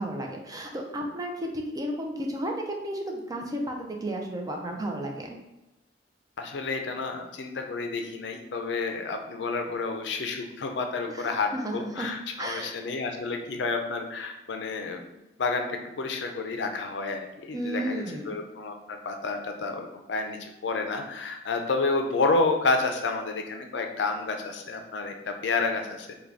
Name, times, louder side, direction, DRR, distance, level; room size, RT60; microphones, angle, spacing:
voice 1, 0.0-5.4 11.0-12.1 12.4-12.8 17.5-18.4, right 1 dB, 20° right, 1 dB, 0.4 m, -33 dB
voice 2, 6.4-15.0 15.4-26.1, left 3 dB, 70° left, 5 dB, 0.4 m, -30 dB
3.6 x 2.2 x 3.3 m, 0.96 s
head